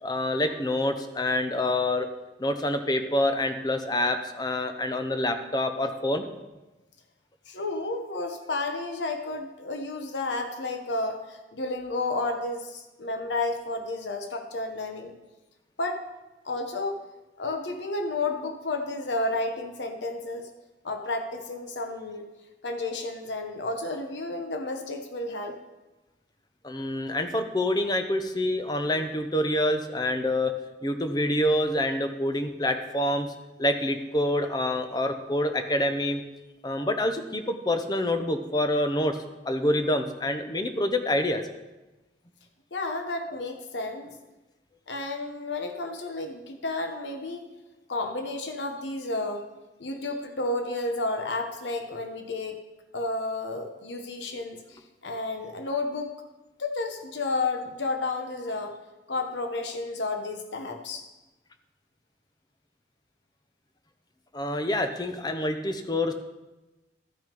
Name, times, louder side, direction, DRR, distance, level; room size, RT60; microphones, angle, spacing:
voice 1, 0.0-2.1 2.4-6.2 26.6-30.5 30.8-33.3 33.6-36.2 36.6-39.2 39.4-41.4 43.3-43.4 64.3-66.1, left 1 dB, 20° left, 7 dB, 0.7 m, -26 dB
voice 2, 7.5-15.1 15.8-16.0 16.4-17.0 17.4-20.5 20.8-22.2 22.6-25.6 42.7-44.1 44.9-47.5 47.9-49.5 49.8-52.6 52.9-56.1 56.6-58.7 59.1-61.0, left 2 dB, 85° left, 5 dB, 1.0 m, -31 dB
13.0 x 6.1 x 5.3 m, 1.1 s
head